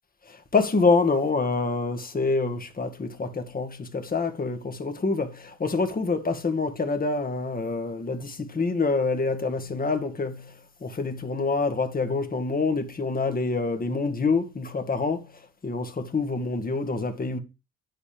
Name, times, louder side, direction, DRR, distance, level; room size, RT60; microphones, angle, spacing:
voice 1, 0.3-10.6 10.8-15.3 15.6-17.4, left 3 dB, 30° left, 1.7 m, -26 dB
9.7 x 8.3 x 3.4 m
cardioid pair, 90°, 30 cm